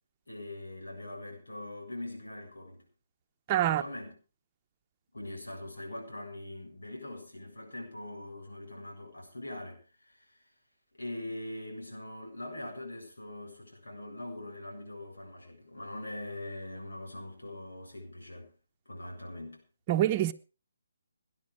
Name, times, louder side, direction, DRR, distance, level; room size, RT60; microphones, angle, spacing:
voice 1, 0.3-2.9 3.5-4.2 5.1-10.4 10.9-18.5 18.9-19.6, left 1 dB, 90° left, 7.6 m, -42 dB
voice 2, 3.5-3.8 19.9-20.3, right 12 dB, 30° right, 1.0 m, -25 dB
19.0 x 11.0 x 4.9 m
figure-of-eight pair, 150°, 0 cm